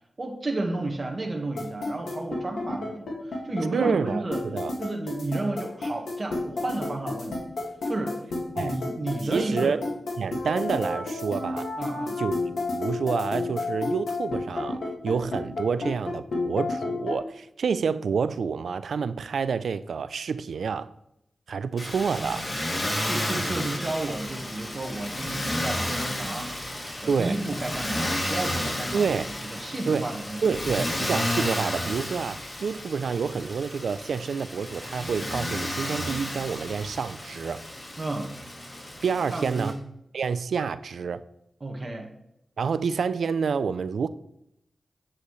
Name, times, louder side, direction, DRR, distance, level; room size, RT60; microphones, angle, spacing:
voice 1, 0.2-4.4 4.8-7.4 7.9-8.2 8.5-9.8 11.8-12.2 23.1-29.1 29.5-30.4 38.0-38.3 39.3-39.7 41.6-42.1, right 2 dB, 45° right, 1.4 m, -32 dB
sound 1, 1.6-17.2, left 3 dB, 85° left, 1.9 m, -30 dB
voice 2, 3.7-4.7 8.5-8.8 9.3-9.8 10.2-11.7 12.2-12.3 12.7-20.9 21.5-22.5 27.1-27.4 28.9-29.3 29.9-30.1 30.4-37.6 39.0-39.8 40.1-41.2 42.6-44.1, right 6 dB, 80° right, 0.3 m, -28 dB
Motor vehicle (road), 21.8-39.7, left 1 dB, 40° left, 2.5 m, -32 dB
8.3 x 7.7 x 3.2 m
cardioid pair, 40°, 0 cm